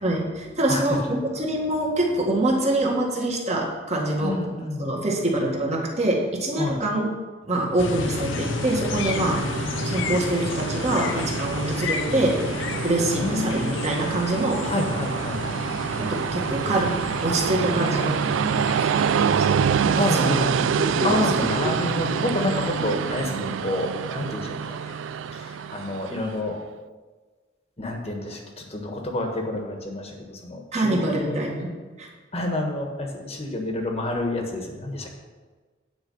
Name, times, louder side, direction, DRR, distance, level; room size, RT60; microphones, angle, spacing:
voice 1, 0.0-4.4 4.8-7.1 7.5-9.4 9.8-14.6 16.0-20.3 20.7-21.2 30.7-31.7 32.0-32.1, right 1 dB, 35° right, -2 dB, 1.8 m, -25 dB
voice 2, 4.2-4.9 6.6-6.8 9.1-9.5 13.0-13.7 14.6-15.6 19.8-20.5 21.0-24.8 25.3-26.6 27.8-31.4 32.3-35.1, left 1 dB, 30° left, 2 dB, 1.4 m, -29 dB
sound 1, 7.8-25.7, left 3 dB, 80° left, 0.7 m, -33 dB
Train, 7.8-26.4, right 7 dB, 85° right, 0.3 m, -27 dB
9.4 x 5.0 x 7.0 m, 1.4 s
head